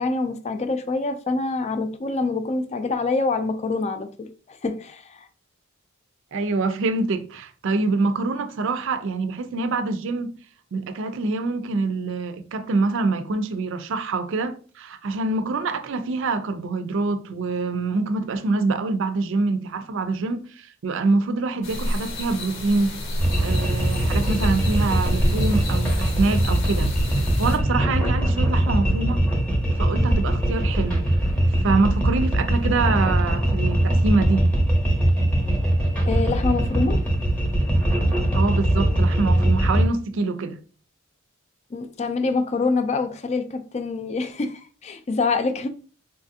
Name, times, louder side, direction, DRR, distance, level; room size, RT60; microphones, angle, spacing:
voice 1, 0.0-5.3 36.1-37.0 41.7-45.7, left 3 dB, 30° left, 0.4 m, -26 dB
voice 2, 6.3-10.3 10.7-23.0 23.4-26.9 27.4-29.2 29.8-31.1 31.6-34.4 38.3-40.6, right 3 dB, 65° right, 0.4 m, -25 dB
sound 1, 21.6-27.6, left 1 dB, 60° left, 0.9 m, -30 dB
sound 2, 23.2-39.8, right 1 dB, 5° left, 0.8 m, -21 dB
4.0 x 2.5 x 2.6 m
head